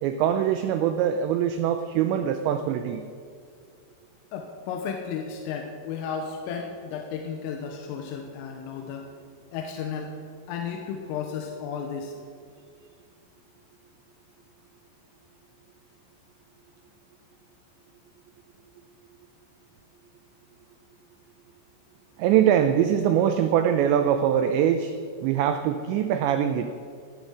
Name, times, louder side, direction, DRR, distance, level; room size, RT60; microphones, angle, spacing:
voice 1, 0.0-3.0 22.2-24.9 25.2-26.7, right 9 dB, 85° right, 8 dB, 2.5 m, -23 dB
voice 2, 4.3-9.1 9.5-10.2 10.5-12.2, left 6 dB, 85° left, 3 dB, 3.6 m, -33 dB
18.5 x 10.5 x 6.2 m, 2.2 s
omnidirectional pair, 5.9 m